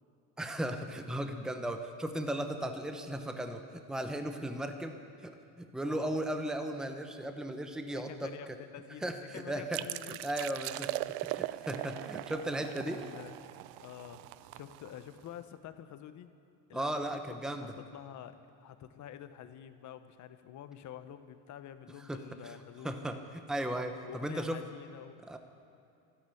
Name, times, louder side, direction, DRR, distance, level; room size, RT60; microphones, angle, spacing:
voice 1, 0.4-4.9 5.2-8.3 9.0-9.9 10.2-13.0 16.7-17.7 22.1-22.5 22.8-24.6 25.3-25.4, right 1 dB, ahead, 6 dB, 0.9 m, -36 dB
voice 2, 5.9-6.2 7.9-10.3 12.8-13.5 13.8-14.3 14.5-16.3 16.7-17.0 17.5-22.9 24.0-25.2, left 10 dB, 45° left, 10 dB, 1.0 m, -48 dB
sound 1, 9.7-15.3, right 18 dB, 80° right, 0.5 m, -40 dB
13.0 x 12.5 x 8.5 m, 2.7 s
cardioid pair, 120°, 39 cm